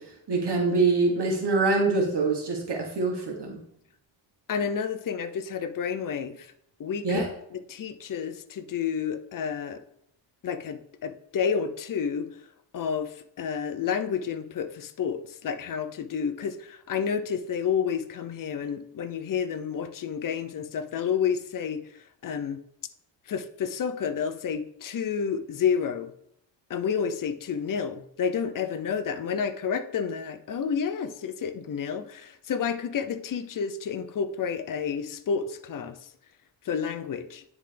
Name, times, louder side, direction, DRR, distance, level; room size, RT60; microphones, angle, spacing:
voice 1, 0.3-3.6 7.0-7.3, right 3 dB, 55° right, 2 dB, 1.4 m, -24 dB
voice 2, 4.5-6.5 6.8-9.8 10.4-12.3 12.7-21.8 22.2-22.6 23.3-26.1 26.7-36.1 36.6-37.4, left 7 dB, 45° left, 10 dB, 0.6 m, -30 dB
9.8 x 3.5 x 3.4 m, 0.70 s
cardioid pair, 70°, 47 cm